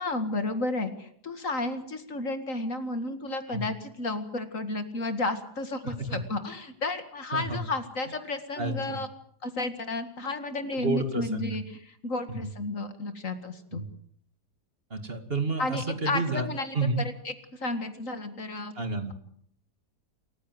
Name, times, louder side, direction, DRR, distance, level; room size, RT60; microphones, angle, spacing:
voice 1, 0.0-9.1 9.4-13.8 15.6-18.7, left 2 dB, 50° left, 9 dB, 2.3 m, -32 dB
voice 2, 5.8-6.2 7.3-7.6 8.6-9.0 10.8-11.6 12.4-12.5 13.7-13.9 14.9-16.5 16.7-17.0 18.7-19.1, right 3 dB, 35° right, 7 dB, 2.6 m, -30 dB
27.5 x 15.0 x 7.9 m, 0.65 s
omnidirectional pair, 1.8 m